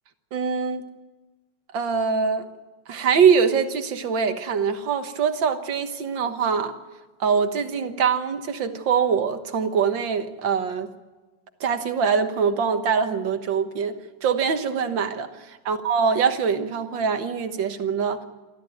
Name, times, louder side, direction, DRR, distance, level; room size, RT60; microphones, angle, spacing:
voice 1, 0.3-0.9 1.7-2.5 2.9-6.8 7.2-10.9 11.6-18.2, right 6 dB, 85° right, 8 dB, 2.1 m, -23 dB
27.5 x 13.5 x 9.2 m, 1.2 s
omnidirectional pair, 2.0 m